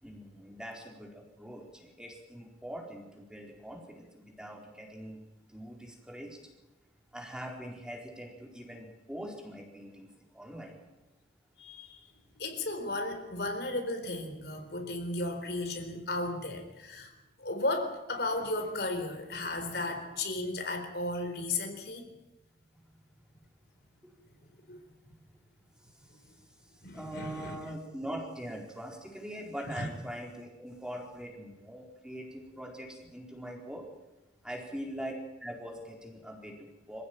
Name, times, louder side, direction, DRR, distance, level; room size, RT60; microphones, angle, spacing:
voice 1, 0.0-5.2 5.5-6.4 7.1-10.1 10.3-10.8 24.0-24.1 26.9-33.8 34.4-35.1 35.4-37.0, equal, 5° right, 0 dB, 4.2 m, -42 dB
voice 2, 11.6-12.0 12.4-17.1 17.4-22.0 24.7-24.8 26.8-27.6 29.7-29.9, left 2 dB, 60° left, 5 dB, 4.1 m, -34 dB
26.0 x 16.0 x 9.2 m, 0.99 s
head